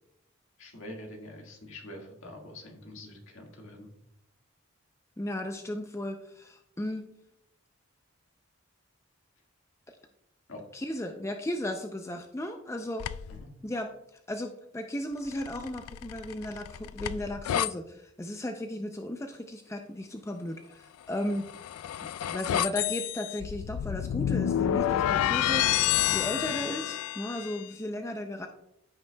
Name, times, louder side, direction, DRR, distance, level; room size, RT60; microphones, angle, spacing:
voice 1, 0.6-3.9 10.5-10.6 13.3-13.5, left 1 dB, 70° left, 1 dB, 1.7 m, -45 dB
voice 2, 5.2-7.1 10.7-13.1 13.6-13.9 14.3-21.5 22.2-25.7 26.1-28.5, left 1 dB, 15° left, 5 dB, 0.4 m, -35 dB
sound 1, 13.0-13.4 15.3-17.7 21.2-27.6, left 11 dB, 90° left, 0.3 m, -29 dB
14.0 x 5.8 x 2.2 m, 0.82 s
head